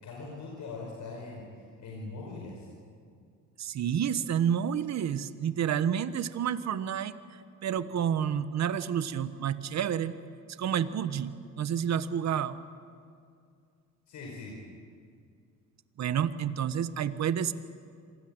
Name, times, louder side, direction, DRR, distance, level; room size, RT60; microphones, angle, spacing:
voice 1, 0.0-2.7 14.1-14.6, left 3 dB, 70° left, -1 dB, 5.3 m, -41 dB
voice 2, 3.6-7.2 7.6-10.1 10.6-12.6 16.0-17.5, right 8 dB, 60° right, 12 dB, 1.2 m, -29 dB
26.0 x 19.5 x 8.9 m, 2.3 s
cardioid pair, 90°, 30 cm